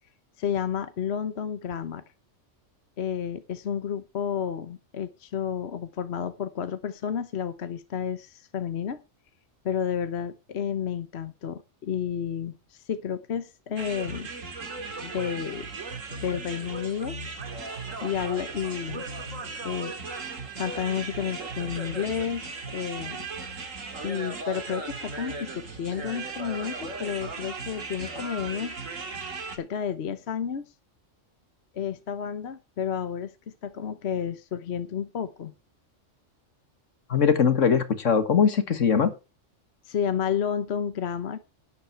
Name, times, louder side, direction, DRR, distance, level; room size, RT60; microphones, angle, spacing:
voice 1, 0.4-2.0 3.0-9.0 9.6-14.3 15.0-15.7 16.2-17.2 18.0-19.0 19.6-19.9 20.6-23.3 24.0-28.8 29.5-30.7 31.7-33.3 33.6-35.5 39.8-41.4, left 8 dB, 60° left, 11 dB, 1.2 m, -31 dB
sound 1, 13.8-29.6, right 3 dB, 90° right, 2.3 m, -37 dB
voice 2, 37.1-39.1, left 6 dB, 75° left, 11 dB, 1.9 m, -21 dB
12.0 x 9.5 x 4.5 m, 0.29 s
omnidirectional pair, 1.3 m